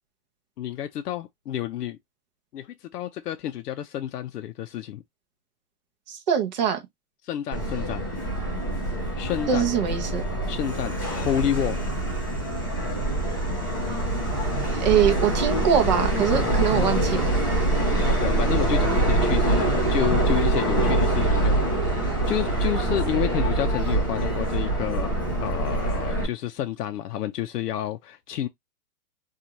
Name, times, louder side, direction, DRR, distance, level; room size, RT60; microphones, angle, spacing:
voice 1, 0.6-2.0 2.5-5.0 7.2-8.1 9.2-9.7 10.5-11.8 17.9-25.1 25.4-28.5, left 11 dB, 85° left, 0.6 m, -30 dB
voice 2, 6.1-6.8 9.5-10.2 14.7-17.3, right 8 dB, 30° right, 0.6 m, -23 dB
Subway metro underground, 7.5-26.2, right 2 dB, 15° left, 0.4 m, -24 dB
2.6 x 2.4 x 2.8 m
hypercardioid pair, 150°, 46 cm